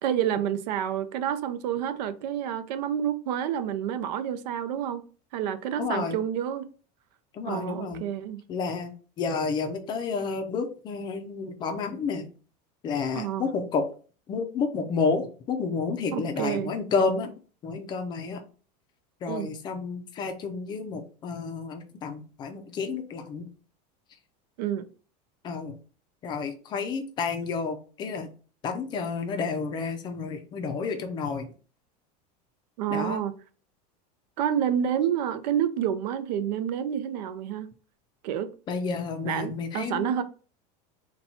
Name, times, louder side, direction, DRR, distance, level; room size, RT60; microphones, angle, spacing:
voice 1, 0.0-5.0 5.3-6.7 7.5-8.4 13.2-13.5 16.1-16.7 19.3-19.5 24.6-24.9 32.8-33.3 34.4-37.7 38.2-38.5 39.2-40.2, right 9 dB, 85° right, 0.6 m, -29 dB
voice 2, 5.8-6.2 7.3-8.0 8.5-8.9 9.2-12.3 12.8-13.8 14.3-17.3 17.6-18.4 19.2-23.4 25.4-25.8 26.2-28.3 28.6-31.5 32.9-33.2 38.7-40.2, left 4 dB, 20° left, 0.4 m, -30 dB
4.1 x 2.2 x 4.2 m
supercardioid pair, 170°, 21 cm